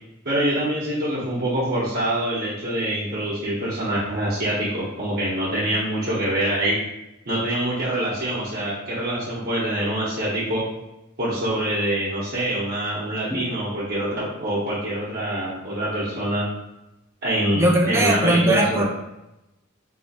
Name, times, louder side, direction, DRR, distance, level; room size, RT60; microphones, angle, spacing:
voice 1, 0.2-6.7 7.3-10.6 11.2-16.5 17.2-18.9, right 1 dB, 50° right, -9 dB, 0.9 m, -25 dB
voice 2, 17.5-18.9, right 1 dB, 10° right, 0 dB, 0.4 m, -19 dB
3.0 x 2.8 x 2.8 m, 0.93 s
head